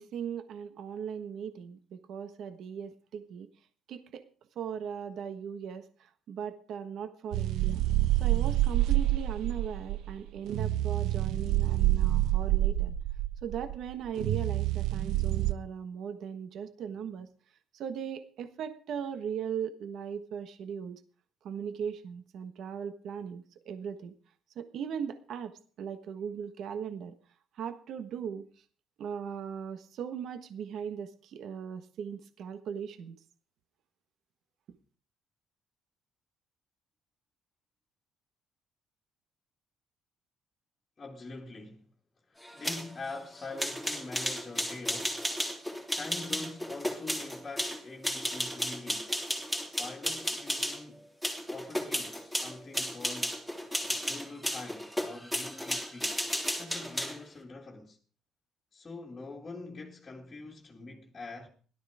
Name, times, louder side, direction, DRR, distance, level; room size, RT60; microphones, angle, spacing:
voice 1, 0.0-3.5 3.9-4.2 4.5-7.8 8.1-12.9 13.4-17.3 17.7-21.0 21.4-24.1 24.5-27.1 27.5-28.6 29.0-33.2, right 7 dB, 60° right, 1.3 m, -38 dB
sound 1, 7.3-15.5, right 15 dB, 80° right, 1.1 m, -27 dB
voice 2, 41.0-41.9 42.3-45.3 45.9-49.1 49.8-51.1 51.5-53.6 53.9-56.2 56.6-58.0 58.7-61.5, left 3 dB, 20° left, 2.0 m, -44 dB
sound 2, 42.4-50.8 51.2-57.2, equal, 5° right, 3.1 m, -34 dB
17.0 x 12.5 x 4.9 m
cardioid pair, 135°, 0 cm